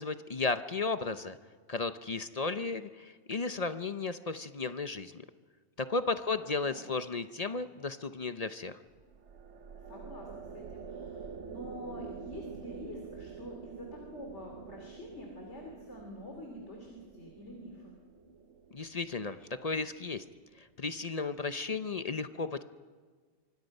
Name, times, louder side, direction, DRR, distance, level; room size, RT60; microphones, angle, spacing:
voice 1, 0.0-1.4 1.7-5.2 5.8-8.8 18.7-20.2 20.6-22.6, left 3 dB, 40° left, 10 dB, 0.7 m, -34 dB
voice 2, 6.4-6.9 9.9-17.9, left 1 dB, 90° left, 1 dB, 3.3 m, -47 dB
sound 1, 8.9-20.3, right 6 dB, 85° right, 1.3 m, -47 dB
25.5 x 24.5 x 5.4 m, 1.5 s
omnidirectional pair, 1.2 m